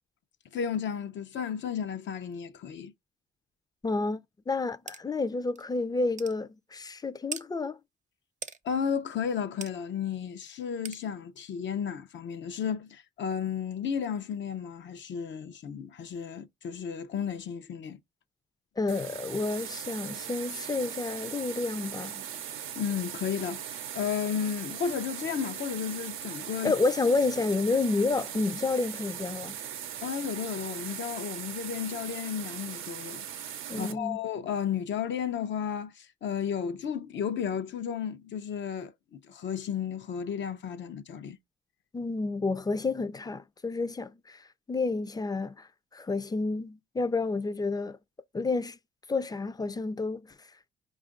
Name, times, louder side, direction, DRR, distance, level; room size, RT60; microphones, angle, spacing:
voice 1, 0.5-2.9 8.6-18.0 22.8-26.7 30.0-33.3 33.8-41.4, left 7 dB, 65° left, 0.6 m, -33 dB
voice 2, 3.8-4.2 4.5-7.8 18.8-22.2 26.6-29.6 33.7-34.2 41.9-45.7 45.9-48.0 48.3-48.8 49.1-50.3, left 3 dB, 20° left, 0.5 m, -30 dB
sound 1, 4.9-5.0 5.6-5.7 6.2-6.4 7.3-7.5 8.4-8.6 9.6-9.7 10.8-11.0, right 5 dB, 35° right, 0.6 m, -39 dB
sound 2, 18.9-33.9, right 9 dB, 90° right, 0.6 m, -39 dB
4.9 x 2.4 x 3.7 m
cardioid pair, 65°, 20 cm